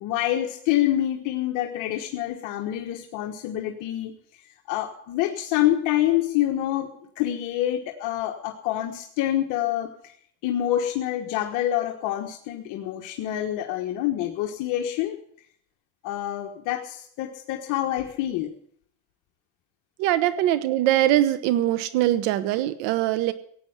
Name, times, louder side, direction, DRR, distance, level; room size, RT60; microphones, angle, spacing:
voice 1, 0.0-4.1 4.7-6.9 7.2-9.9 10.4-15.2 16.0-18.5, left 13 dB, 55° left, 1 dB, 1.5 m, -26 dB
voice 2, 20.0-23.3, right 13 dB, 75° right, 13 dB, 1.1 m, -22 dB
16.5 x 8.9 x 8.1 m, 0.65 s
cardioid pair, 150°, 36 cm